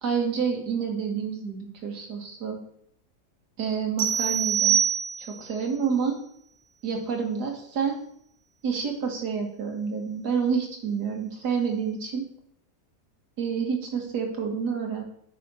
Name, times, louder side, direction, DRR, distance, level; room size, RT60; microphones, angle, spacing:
voice 1, 0.0-2.6 3.6-4.8 5.4-6.2 6.8-8.0 8.6-12.2 13.4-15.0, right 6 dB, 85° right, 2 dB, 2.0 m, -28 dB
sound 1, 4.0-5.6, right 8 dB, 70° right, 1.5 m, -24 dB
9.2 x 5.1 x 4.2 m, 0.68 s
omnidirectional pair, 1.7 m